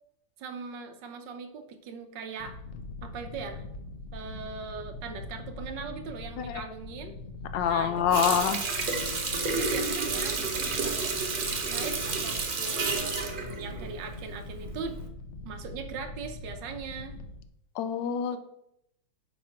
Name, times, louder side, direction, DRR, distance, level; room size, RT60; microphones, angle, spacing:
voice 1, 0.4-2.6 3.0-3.6 4.1-7.1 7.7-8.8 9.5-11.1 11.7-15.0 15.4-17.2 18.3-18.4, right 5 dB, 75° right, 6 dB, 1.5 m, -40 dB
sound 1, 2.4-17.5, left 2 dB, 55° left, 0.9 m, -42 dB
voice 2, 7.5-8.6 17.8-18.4, left 8 dB, 85° left, 10 dB, 1.3 m, -26 dB
Water tap faucet, 8.1-14.5 14.9-15.1, right 4 dB, 45° right, 0.7 m, -30 dB
8.4 x 3.2 x 5.6 m, 0.79 s
omnidirectional pair, 2.0 m